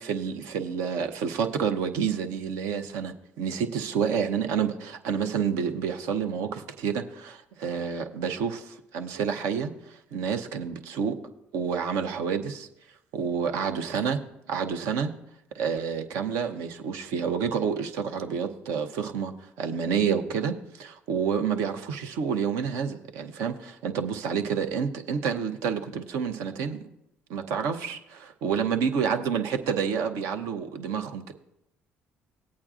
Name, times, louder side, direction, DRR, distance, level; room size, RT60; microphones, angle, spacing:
voice 1, 0.0-11.2 11.5-12.7 13.1-14.2 14.5-15.1 15.5-19.3 19.6-26.8 27.3-31.3, right 6 dB, 75° right, 6 dB, 0.8 m, -29 dB
18.0 x 8.6 x 2.4 m, 0.86 s
hypercardioid pair, 60°, 5 cm